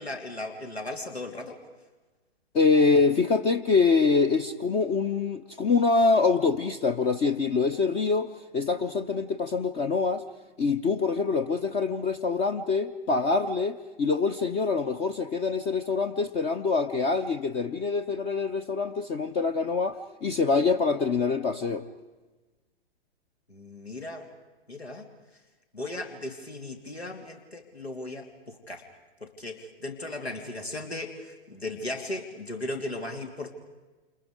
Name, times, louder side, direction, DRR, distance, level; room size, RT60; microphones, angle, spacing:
voice 1, 0.0-1.6 23.5-24.3 24.7-25.1 25.7-28.9 29.2-33.5, left 2 dB, 85° left, 3 dB, 3.2 m, -37 dB
voice 2, 2.5-10.2 10.6-21.9, left 4 dB, 20° left, 9 dB, 0.8 m, -25 dB
28.5 x 28.5 x 5.1 m, 1.2 s
figure-of-eight pair, 115°, 31 cm